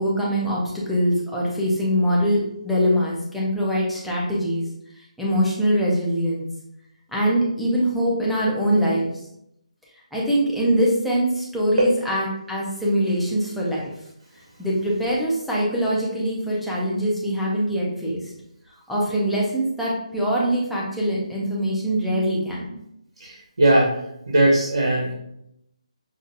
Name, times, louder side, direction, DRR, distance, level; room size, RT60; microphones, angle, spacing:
voice 1, 0.0-4.7 4.9-6.5 7.1-9.3 10.1-13.9 14.6-18.3 18.9-22.7, equal, ahead, -7 dB, 0.4 m, -23 dB
voice 2, 23.2-25.1, right 1 dB, 70° right, -4 dB, 1.2 m, -20 dB
5.2 x 2.4 x 2.7 m, 0.78 s
hypercardioid pair, 170°, 4 cm